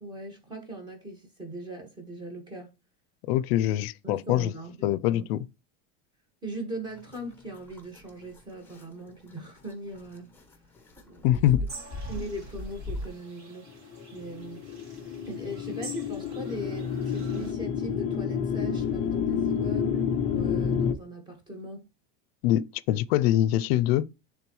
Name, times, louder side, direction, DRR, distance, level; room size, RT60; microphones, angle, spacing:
voice 1, 0.0-2.7 4.0-5.2 6.4-10.3 11.0-11.4 12.1-14.6 15.3-21.9, right 1 dB, 15° right, 1.5 m, -40 dB
voice 2, 3.3-4.5 4.8-5.5 11.2-11.6 22.4-24.1, left 13 dB, 80° left, 0.5 m, -24 dB
sound 1, 6.9-13.1, left 1 dB, 5° left, 0.8 m, -40 dB
sound 2, 11.7-17.5, right 3 dB, 45° right, 2.4 m, -47 dB
sound 3, 13.7-20.9, left 7 dB, 20° left, 0.4 m, -29 dB
10.0 x 3.6 x 3.1 m
cardioid pair, 170°, 30 cm